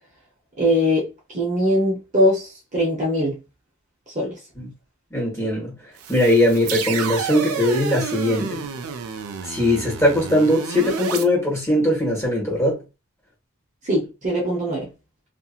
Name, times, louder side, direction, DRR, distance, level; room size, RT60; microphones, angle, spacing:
voice 1, 0.6-3.4 4.1-4.4 13.8-14.9, equal, 35° right, 0.9 m, -21 dB
voice 2, 5.1-5.8 6.1-8.6 9.4-12.8, left 1 dB, 15° left, 1.4 m, -20 dB
sound 1, 6.0-11.2, right 5 dB, 80° right, 0.5 m, -30 dB
2.8 x 2.5 x 2.4 m
head